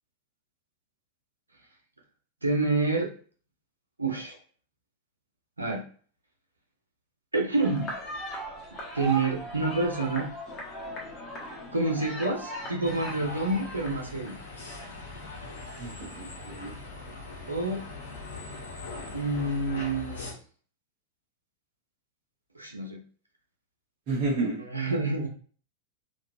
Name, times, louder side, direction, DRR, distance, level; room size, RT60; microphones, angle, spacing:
voice 1, 2.4-3.1 4.0-4.4 5.6-5.8 7.3-7.9 8.9-10.3 11.7-14.4 17.5-17.8 19.1-20.3 22.5-23.0 24.3-25.3, right 3 dB, 80° right, 0 dB, 0.6 m, -28 dB
sound 1, 7.6-16.4, right 1 dB, 25° left, 1.2 m, -39 dB
sound 2, 12.8-20.3, left 3 dB, 65° left, 1.1 m, -41 dB
voice 2, 15.8-16.7 24.1-24.6, right 3 dB, 40° right, -3 dB, 1.0 m, -30 dB
3.8 x 2.5 x 2.7 m, 0.42 s
figure-of-eight pair, 90°, 0 cm